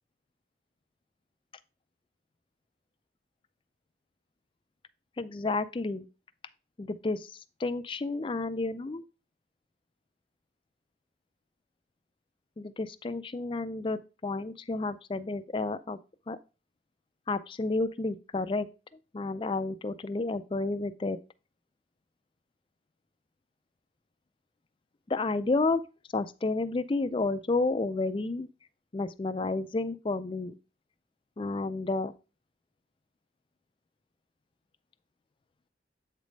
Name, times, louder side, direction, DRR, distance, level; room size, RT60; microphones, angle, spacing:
voice 1, 5.2-6.1 6.8-7.3 7.6-9.0 12.6-16.0 16.3-16.4 17.3-18.7 19.1-21.2 25.1-25.8 26.1-28.5 28.9-30.5 31.4-32.1, left 3 dB, 25° left, 0.4 m, -31 dB
8.1 x 3.2 x 5.2 m
head